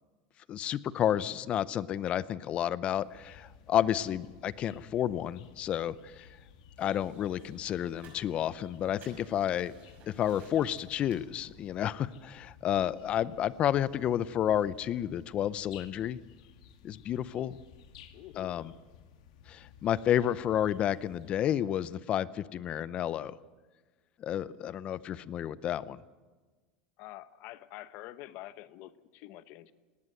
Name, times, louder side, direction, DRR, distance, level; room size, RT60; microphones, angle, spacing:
voice 1, 0.5-6.3 6.8-9.7 10.1-16.2 16.8-17.6 18.4-18.7 19.5-23.4 24.2-26.0, left 10 dB, 30° left, 18 dB, 0.6 m, -31 dB
sound 1, 2.8-21.4, left 7 dB, 90° left, 2.1 m, -56 dB
sound 2, 6.8-11.9, right 5 dB, 40° right, 5.9 m, -59 dB
voice 2, 18.1-18.7 27.0-29.7, left 15 dB, 50° left, 14 dB, 0.9 m, -47 dB
18.5 x 18.0 x 7.9 m, 1.4 s
supercardioid pair, 155°, 4 cm